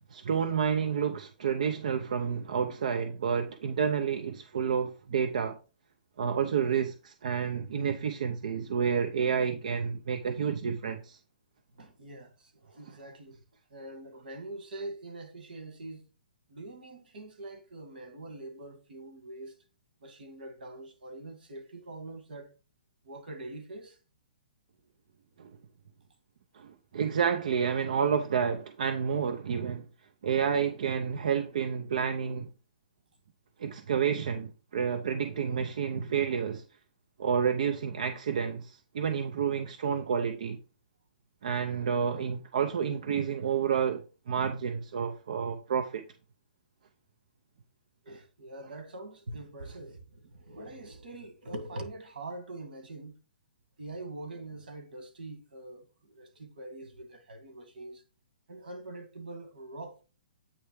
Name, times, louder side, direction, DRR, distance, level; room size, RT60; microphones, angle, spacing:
voice 1, 0.1-5.6 6.2-11.2 25.4-25.5 26.5-29.9 30.2-32.5 33.6-36.6 37.2-40.6 41.4-46.0, right 7 dB, 50° right, 0.6 m, -30 dB
voice 2, 11.8-13.4 13.7-16.0 16.5-19.5 20.0-22.5 23.0-24.0 48.0-53.1 53.8-58.0 58.5-60.0, right 2 dB, 70° right, 2.0 m, -44 dB
8.6 x 3.3 x 4.7 m
hypercardioid pair, 175°, 5 cm